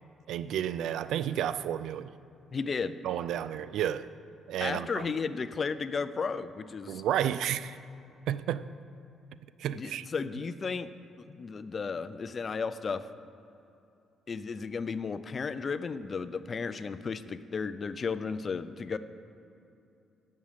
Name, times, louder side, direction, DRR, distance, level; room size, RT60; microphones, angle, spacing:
voice 1, 0.3-2.1 3.0-4.1 4.5-5.1 6.9-7.8 8.3-8.7 9.6-10.1, right 10 dB, 80° right, 0.3 m, -31 dB
voice 2, 2.5-2.9 4.6-7.0 9.7-10.9 11.3-13.0 14.3-19.0, left 5 dB, 40° left, 0.4 m, -34 dB
8.2 x 6.3 x 7.4 m
cardioid pair, 90°, 0 cm